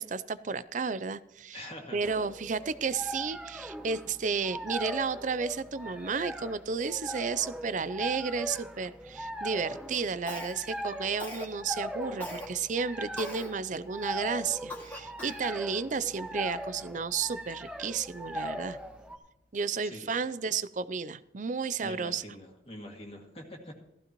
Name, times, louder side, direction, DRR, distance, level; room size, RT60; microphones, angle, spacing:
voice 1, 0.0-1.7 1.9-18.8 19.5-22.2, right 5 dB, 45° right, 16 dB, 0.5 m, -32 dB
voice 2, 1.5-2.1 19.8-20.1 21.8-23.8, left 1 dB, 35° left, 1 dB, 2.1 m, -44 dB
sound 1, 2.0-19.2, right 1 dB, 5° right, 1.3 m, -40 dB
Cough, 10.3-10.8 11.2-11.6 12.2-12.5 13.2-13.5 14.0-14.1 14.7-15.5, left 1 dB, 10° left, 2.1 m, -40 dB
15.5 x 14.5 x 3.0 m, 0.85 s
head